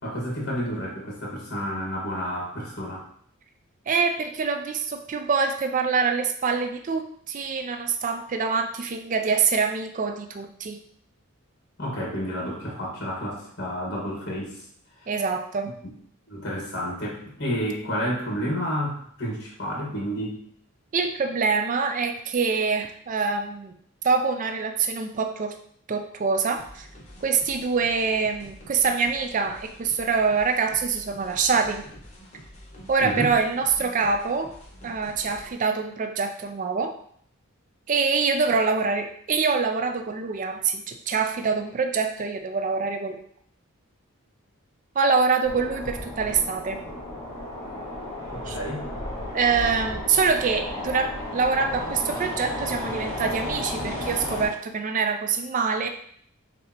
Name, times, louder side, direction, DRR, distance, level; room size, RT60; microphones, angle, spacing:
voice 1, 0.0-3.0 11.8-14.5 15.0-15.1 16.3-20.4 33.0-33.3 48.3-48.9, equal, 50° left, -3 dB, 1.6 m, -30 dB
voice 2, 3.9-10.8 15.1-15.7 20.9-23.7 24.0-25.5 25.9-26.9 27.2-31.8 32.9-34.5 34.8-36.9 37.9-43.2 45.0-46.8 48.5-48.6 49.3-55.9, right 5 dB, 35° right, 6 dB, 0.3 m, -25 dB
sound 1, 26.5-35.5, equal, 30° left, 1.1 m, -47 dB
sound 2, 45.4-54.5, left 1 dB, 10° left, 1.8 m, -33 dB
6.5 x 2.7 x 2.8 m, 0.65 s
head